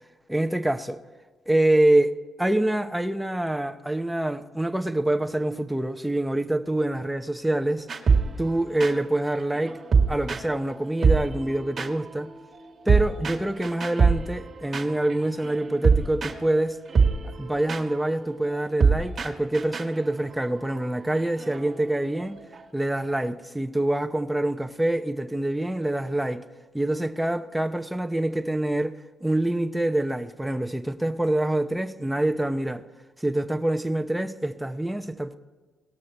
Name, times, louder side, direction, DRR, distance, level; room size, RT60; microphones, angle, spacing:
voice 1, 0.3-1.0 1.5-7.9 8.4-9.8 10.1-12.3 12.9-16.8 17.2-22.4 22.7-26.4 26.7-32.8 33.2-35.4, right 1 dB, 5° right, 0.8 m, -26 dB
sound 1, 7.9-10.8 11.0-22.6, right 5 dB, 45° right, 1.6 m, -25 dB
19.0 x 6.4 x 4.2 m
cardioid pair, 90°, 0 cm